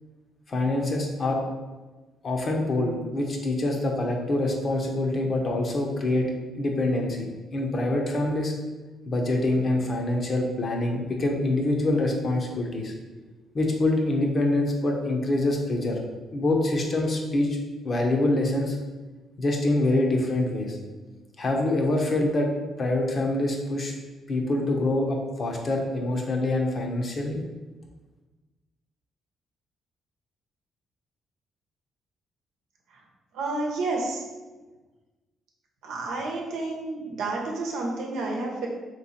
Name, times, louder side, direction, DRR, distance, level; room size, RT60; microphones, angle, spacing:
voice 1, 0.5-1.4 2.2-6.3 6.6-8.5 9.1-12.9 13.5-16.0 16.3-17.6 17.8-18.8 19.4-20.8 21.4-22.5 22.8-23.9 24.3-27.4, left 2 dB, 45° left, 1 dB, 0.8 m, -25 dB
voice 2, 33.3-34.2 35.8-38.7, right 2 dB, 90° right, -1 dB, 0.8 m, -30 dB
3.3 x 3.1 x 4.1 m, 1.2 s
cardioid pair, 90°, 0 cm